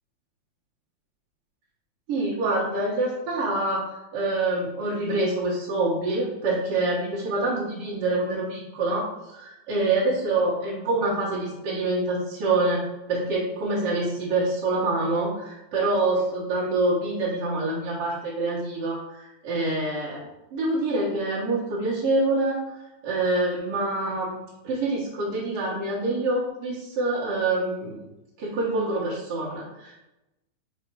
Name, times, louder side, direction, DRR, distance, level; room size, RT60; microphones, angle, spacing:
voice 1, 2.1-20.3 20.5-24.4 24.6-28.0 28.4-30.0, right 2 dB, 60° right, -7 dB, 2.0 m, -26 dB
5.6 x 4.4 x 4.6 m, 0.97 s
omnidirectional pair, 3.3 m